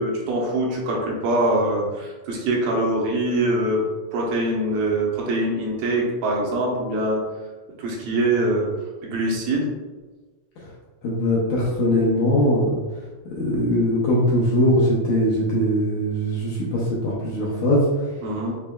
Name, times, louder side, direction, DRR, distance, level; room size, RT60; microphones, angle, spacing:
voice 1, 0.0-3.8 4.1-7.2 7.8-8.7 9.0-9.7 18.2-18.5, right 1 dB, 80° right, -2 dB, 2.6 m, -23 dB
voice 2, 11.0-12.8 13.4-18.1, equal, 75° left, -6 dB, 1.9 m, -21 dB
6.6 x 3.2 x 2.3 m, 1.3 s
omnidirectional pair, 4.1 m